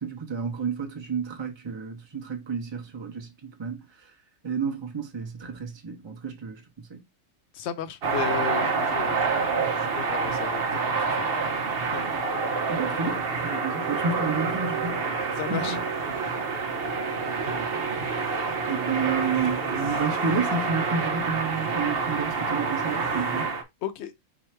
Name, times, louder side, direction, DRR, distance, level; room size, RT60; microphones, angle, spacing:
voice 1, 0.0-3.8 4.4-7.0 12.7-15.8 18.7-23.5, right 5 dB, 25° right, 0.8 m, -31 dB
voice 2, 7.5-9.3 9.7-11.5 11.8-12.1 15.4-15.8 16.2-16.4 23.8-24.1, left 9 dB, 65° left, 0.9 m, -35 dB
sound 1, 8.0-23.6, right 4 dB, 55° right, 1.0 m, -27 dB
4.8 x 2.5 x 4.4 m
omnidirectional pair, 1.3 m